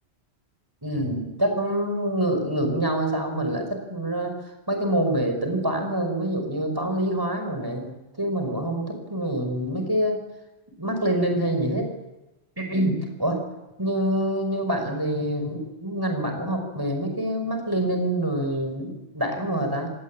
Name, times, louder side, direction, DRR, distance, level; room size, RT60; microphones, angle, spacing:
voice 1, 0.8-4.3 4.7-10.2 10.8-11.9 12.6-13.4 13.8-19.9, right 1 dB, 20° right, 4 dB, 5.5 m, -26 dB
27.0 x 19.0 x 8.7 m, 1.0 s
omnidirectional pair, 1.1 m